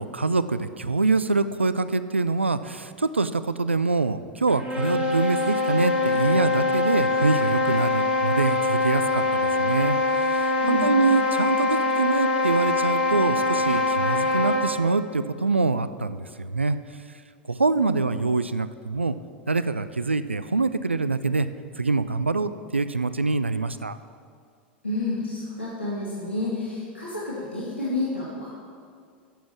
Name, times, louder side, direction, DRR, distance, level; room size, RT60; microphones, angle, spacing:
voice 1, 0.0-16.8 17.5-19.1 19.5-21.5 21.8-24.0, right 3 dB, 90° right, 13 dB, 0.4 m, -25 dB
sound 1, 4.5-14.8, left 3 dB, 20° right, 2.9 m, -23 dB
voice 2, 24.8-28.5, left 2 dB, 85° left, -8 dB, 2.2 m, -30 dB
10.0 x 7.4 x 7.1 m, 2.2 s
figure-of-eight pair, 85°, 6 cm